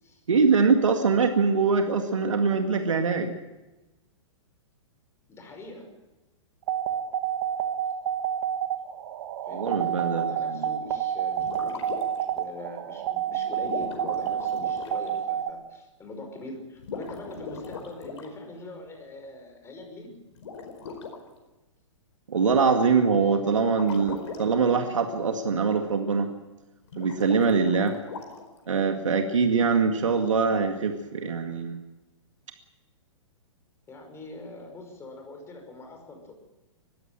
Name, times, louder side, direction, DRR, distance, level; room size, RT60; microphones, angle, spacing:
voice 1, 0.3-3.3 9.5-10.7 22.3-26.3 27.0-28.0 28.7-31.8, right 5 dB, 75° right, 5 dB, 2.1 m, -23 dB
voice 2, 5.3-5.9 9.5-20.1 23.2-24.6 33.9-36.4, left 2 dB, 15° left, 4 dB, 5.6 m, -43 dB
sound 1, 6.7-15.5, right 10 dB, 50° right, 2.1 m, -28 dB
sound 2, 11.3-12.3 13.6-15.1 16.8-18.3 20.4-21.1 23.7-24.4 26.8-28.6, left 5 dB, 60° left, 4.8 m, -39 dB
21.0 x 15.5 x 9.1 m, 1.1 s
figure-of-eight pair, 115°, 16 cm